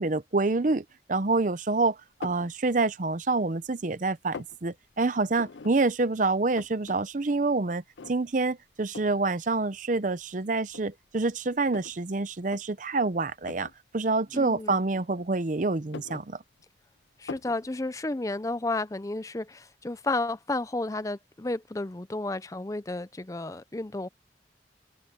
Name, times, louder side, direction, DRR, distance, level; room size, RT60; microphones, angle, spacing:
voice 1, 0.0-16.4, right 3 dB, 45° right, 0.7 m, -27 dB
sound 1, 2.2-2.5 3.1-3.7 4.0-4.6 5.3-5.7 6.1-6.2 6.3-7.0 7.3-7.4 8.0-8.4 8.9-9.2 10.1-10.2 10.7-12.0 12.4-12.6 13.4-13.8 14.7-15.4 15.8-16.8 17.3-17.6, left 4 dB, 80° left, 0.6 m, -42 dB
voice 2, 14.3-14.8 17.2-24.1, left 2 dB, 20° left, 0.5 m, -32 dB
open air
head